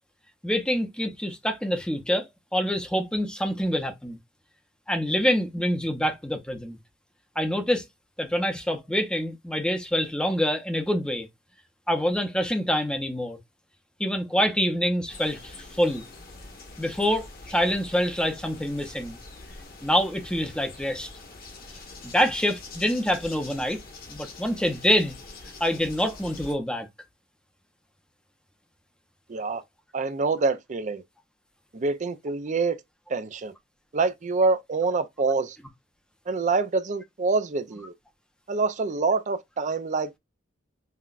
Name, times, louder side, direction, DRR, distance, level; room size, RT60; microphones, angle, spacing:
voice 1, 0.4-4.2 4.9-6.8 7.4-7.8 8.2-11.3 11.9-13.4 14.0-16.0 16.8-19.2 19.8-21.1 22.1-23.8 24.1-25.2 25.6-26.9, equal, 5° left, 0.7 m, -26 dB
sound 1, 15.1-26.5, left 3 dB, 45° left, 1.2 m, -45 dB
voice 2, 29.3-29.6 29.9-31.0 31.7-32.8 33.1-33.5 33.9-35.6 36.3-37.9 38.5-40.2, right 4 dB, 35° right, 0.4 m, -26 dB
5.7 x 2.3 x 2.4 m
head